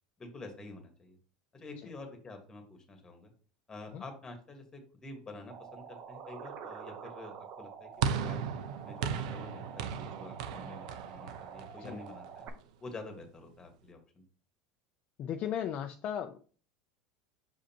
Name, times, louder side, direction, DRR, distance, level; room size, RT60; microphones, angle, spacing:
voice 1, 0.2-1.2 1.5-3.3 3.7-8.5 8.9-12.5 12.8-14.2, left 2 dB, 15° left, 5 dB, 1.5 m, -48 dB
sound 1, 5.5-12.5, right 7 dB, 50° right, 0.9 m, -47 dB
sound 2, 8.0-12.4, right 7 dB, 80° right, 0.6 m, -36 dB
voice 2, 15.2-16.4, left 9 dB, 40° left, 6 dB, 0.4 m, -36 dB
6.4 x 5.0 x 2.9 m, 0.41 s
supercardioid pair, 135°, 4 cm